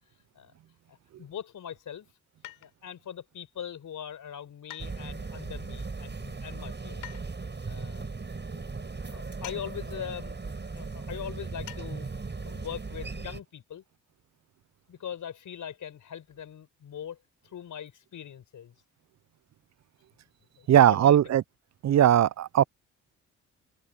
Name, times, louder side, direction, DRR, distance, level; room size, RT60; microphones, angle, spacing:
voice 1, 0.9-2.1 2.6-7.1 7.7-8.1 8.5-8.8 9.1-13.8 14.9-17.2 17.4-18.7 20.6-21.4, left 9 dB, 65° left, 5.3 m, -41 dB
sound 1, 2.4-3.0 4.7-5.4 7.0-7.3 9.4-9.7 9.9-10.0 11.7-11.9 12.2-12.3, left 16 dB, 85° left, 7.0 m, -45 dB
sound 2, 4.8-13.4, right 4 dB, 30° right, 7.2 m, -38 dB
voice 2, 20.7-21.4 21.8-22.6, right 10 dB, 55° right, 0.6 m, -19 dB
supercardioid pair, 60°, 33 cm